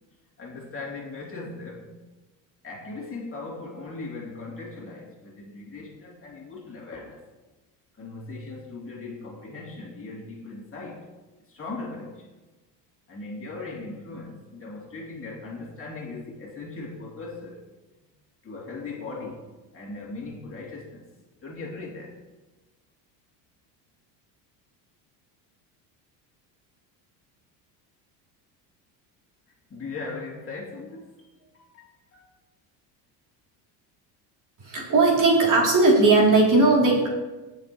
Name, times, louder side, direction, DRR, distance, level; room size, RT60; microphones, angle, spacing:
voice 1, 0.4-2.0 2.6-7.3 8.0-11.1 11.5-12.3 13.1-17.6 18.4-21.0 21.4-22.2 29.7-32.3, left 3 dB, 25° left, -3 dB, 2.8 m, -39 dB
voice 2, 34.6-37.1, right 3 dB, 40° right, -2 dB, 3.1 m, -18 dB
18.5 x 6.3 x 3.1 m, 1.2 s
supercardioid pair, 90°, 49 cm